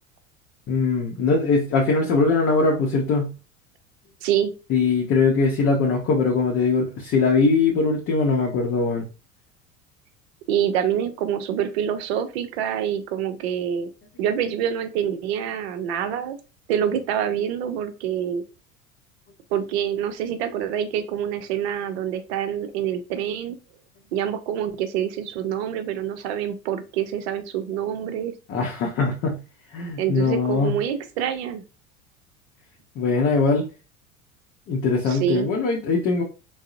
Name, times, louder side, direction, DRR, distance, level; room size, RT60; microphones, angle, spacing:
voice 1, 0.7-3.3 4.7-9.1 28.5-29.4 29.7-30.8 33.0-33.7 34.7-36.2, left 4 dB, 35° left, 0.6 m, -21 dB
voice 2, 4.2-4.5 10.5-13.9 14.2-16.4 16.7-18.4 19.5-23.6 24.1-28.3 30.0-31.6 35.1-35.5, right 9 dB, 55° right, 0.5 m, -26 dB
3.6 x 2.0 x 2.5 m
figure-of-eight pair, 70°, 40 cm